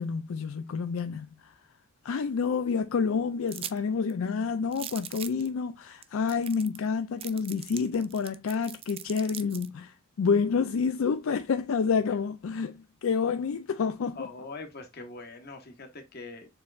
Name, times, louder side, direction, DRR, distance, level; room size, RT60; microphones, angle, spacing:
voice 1, 0.0-1.5 2.0-14.3, left 5 dB, 70° left, 0.4 m, -29 dB
sound 1, 3.5-3.8 4.1-4.2 4.7-5.5 6.0-6.1 6.3-6.9 7.2-9.7, right 10 dB, 25° right, 0.3 m, -40 dB
voice 2, 14.1-16.5, left 3 dB, 50° left, 1.1 m, -43 dB
7.0 x 3.1 x 2.3 m
head